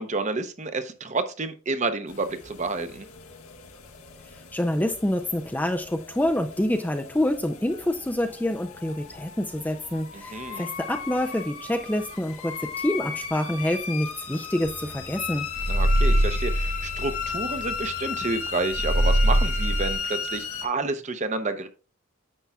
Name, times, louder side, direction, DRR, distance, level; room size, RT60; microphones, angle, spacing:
voice 1, 0.0-3.1 10.1-10.7 15.7-21.7, right 3 dB, 35° right, 0.7 m, -30 dB
sound 1, 2.1-20.7, left 6 dB, 85° left, 1.5 m, -36 dB
voice 2, 4.5-15.5, left 1 dB, 10° left, 0.4 m, -27 dB
sound 2, 14.7-14.9 15.1-18.0 18.3-18.4 18.7-20.0, right 1 dB, 70° right, 3.5 m, -23 dB
10.0 x 6.9 x 2.3 m
head